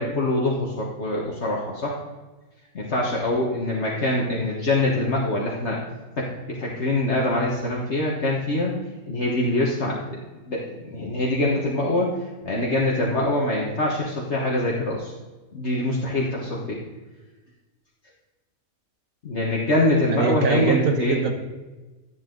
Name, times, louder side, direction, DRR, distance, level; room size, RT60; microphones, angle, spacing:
voice 1, 0.0-2.0 2.7-5.8 6.2-8.7 9.1-10.2 10.5-12.2 12.4-15.1 15.5-16.8 19.2-21.2, left 2 dB, 50° left, -3 dB, 1.6 m, -24 dB
voice 2, 20.1-21.3, right 5 dB, 70° right, 6 dB, 1.5 m, -22 dB
11.5 x 10.0 x 3.9 m, 1.2 s
omnidirectional pair, 1.5 m